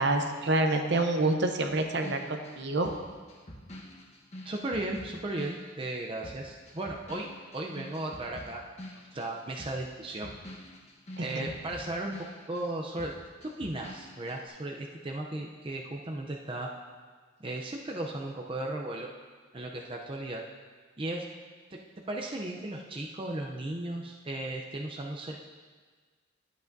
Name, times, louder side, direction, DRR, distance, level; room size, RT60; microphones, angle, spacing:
voice 1, 0.0-2.9 11.2-11.5, right 2 dB, 60° right, 5 dB, 0.7 m, -27 dB
sound 1, 1.7-6.0 6.2-12.7 13.0-14.4, left 1 dB, 35° left, 1.1 m, -47 dB
voice 2, 4.4-7.3 7.5-8.6 9.1-10.3 11.2-12.2 12.5-13.1 13.4-16.7 17.4-19.1 19.5-20.4 21.0-21.2 21.7-21.8 22.1-25.4, right 2 dB, 25° right, 0 dB, 0.5 m, -36 dB
12.0 x 8.3 x 2.6 m, 1.5 s
head